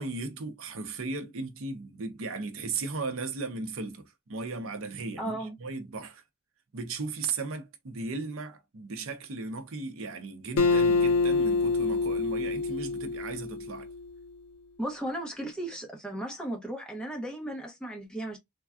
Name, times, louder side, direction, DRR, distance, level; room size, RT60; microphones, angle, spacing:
voice 1, 0.0-6.2 6.7-13.9, right 3 dB, 65° right, 0.6 m, -36 dB
voice 2, 5.2-5.6 14.8-18.4, right 1 dB, 5° left, 0.8 m, -35 dB
Acoustic guitar, 10.6-14.0, left 3 dB, 75° left, 0.5 m, -26 dB
3.4 x 2.2 x 2.2 m
head